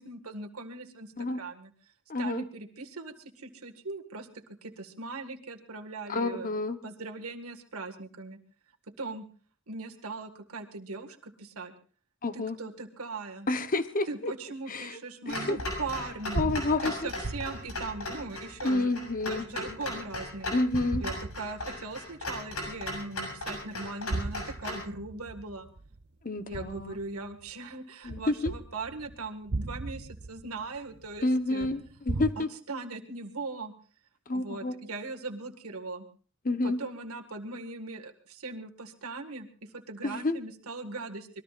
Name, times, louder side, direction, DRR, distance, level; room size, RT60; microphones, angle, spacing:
voice 1, 0.0-1.7 2.2-4.3 4.6-6.5 6.8-8.4 9.0-9.2 9.7-11.7 12.3-13.5 14.1-16.5 16.8-18.9 19.3-20.5 21.0-25.7 26.5-31.7 32.4-33.7 34.3-36.1 36.6-41.4, right 3 dB, 80° right, 5 dB, 1.8 m, -40 dB
voice 2, 2.1-2.5 6.1-6.8 12.2-12.6 13.5-14.3 14.7-15.0 15.3-15.6 16.3-17.1 18.6-19.4 20.5-21.0 26.2-27.0 28.0-28.5 31.2-32.5 34.3-34.7 36.4-36.8 40.0-40.4, left 2 dB, 40° left, 10 dB, 1.0 m, -29 dB
Clock, 15.3-24.9, left 1 dB, 85° left, 6.9 m, -37 dB
sound 1, 16.1-20.2 20.7-22.1 22.5-22.6 23.8-27.5 28.0-32.3, right 2 dB, 50° right, 0.7 m, -38 dB
25.0 x 21.0 x 2.5 m, 0.41 s
head